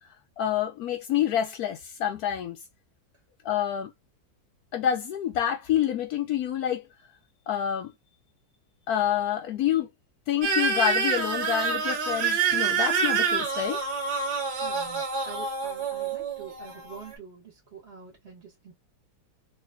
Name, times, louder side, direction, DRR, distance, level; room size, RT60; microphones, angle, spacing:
voice 1, 0.4-2.6 3.4-3.9 4.7-6.8 7.5-7.9 8.9-9.9 10.3-13.8, left 10 dB, 75° left, 0.9 m, -27 dB
sound 1, 10.4-17.1, right 5 dB, 75° right, 2.0 m, -27 dB
voice 2, 14.6-18.7, right 5 dB, 35° right, 1.5 m, -46 dB
3.1 x 3.1 x 2.2 m
omnidirectional pair, 2.0 m